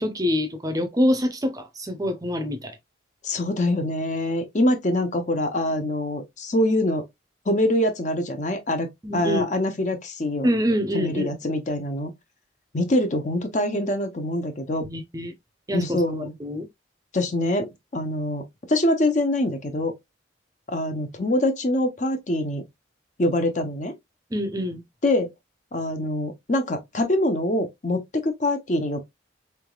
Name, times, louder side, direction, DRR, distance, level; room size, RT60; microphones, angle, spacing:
voice 1, 0.0-2.7 9.0-9.5 10.4-11.3 14.8-15.3 15.7-16.7 24.3-24.8, equal, 20° right, 0.7 m, -25 dB
voice 2, 3.2-7.1 7.5-8.9 9.1-10.5 10.9-12.1 12.7-14.8 15.7-16.3 17.1-19.9 20.7-22.6 23.2-23.9 25.0-25.3 25.7-29.0, left 1 dB, 40° left, 0.7 m, -24 dB
3.9 x 3.4 x 2.3 m
head